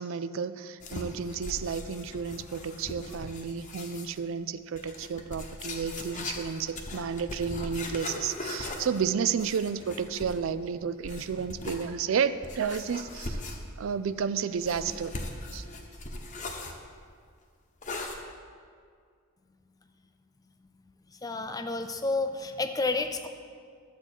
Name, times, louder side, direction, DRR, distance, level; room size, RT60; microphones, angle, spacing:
voice 1, 0.0-13.4 13.8-15.1 15.5-15.6, right 6 dB, 65° right, 13 dB, 0.4 m, -31 dB
sound 1, 0.8-4.2 4.8-10.5 11.0-11.9 12.4-13.9 14.6-16.8 17.8-18.2, left 2 dB, 35° left, 0.9 m, -39 dB
voice 2, 21.2-23.3, left 3 dB, 15° left, 7 dB, 0.4 m, -30 dB
12.5 x 8.1 x 4.5 m, 2.1 s
head